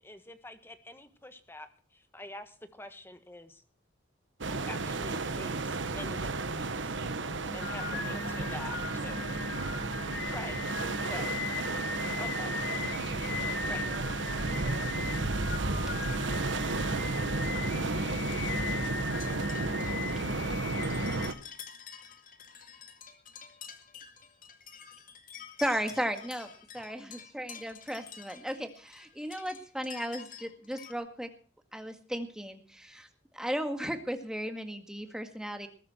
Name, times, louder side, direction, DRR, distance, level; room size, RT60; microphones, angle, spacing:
voice 1, 0.0-3.6 4.5-6.9 7.5-8.7 9.0-9.2 10.3-10.6 11.0-11.3 12.2-12.5 13.7-13.8 15.5-15.6, left 1 dB, 10° left, 9 dB, 1.6 m, -46 dB
sound 1, 4.4-21.3, right 3 dB, 80° right, 1.2 m, -33 dB
voice 2, 6.9-7.4 8.1-9.0 11.4-12.1 12.7-14.9 15.6-16.9 17.2-19.5 21.1-21.5, right 3 dB, 60° right, 5 dB, 2.8 m, -49 dB
Singing, 7.3-21.3, left 4 dB, 80° left, 3.4 m, -38 dB
sound 2, 19.1-30.9, left 8 dB, 45° left, 2.0 m, -49 dB
voice 3, 25.6-31.3 31.7-33.1 33.3-35.7, equal, 5° right, 6 dB, 1.9 m, -35 dB
20.5 x 11.5 x 4.4 m, 0.42 s
head